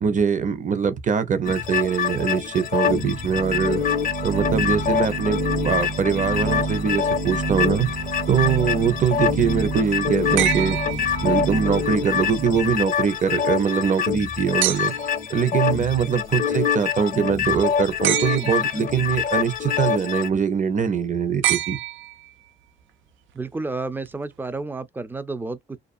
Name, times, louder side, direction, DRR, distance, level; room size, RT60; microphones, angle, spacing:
voice 1, 0.0-3.8 4.2-7.9 8.3-10.8 11.2-14.9 15.3-21.8, right 7 dB, 40° right, 0.8 m, -23 dB
sound 1, 1.4-20.3, left 7 dB, 45° left, 0.6 m, -26 dB
sound 2, 3.0-12.7, right 3 dB, 55° right, 1.4 m, -29 dB
sound 3, 10.4-11.7 14.6-15.2 18.0-18.8 21.4-22.5 24.1-24.2, right 12 dB, 75° right, 0.4 m, -26 dB
voice 2, 23.3-25.8, right 3 dB, 10° right, 0.4 m, -31 dB
2.4 x 2.4 x 2.4 m
cardioid pair, 90°, 20 cm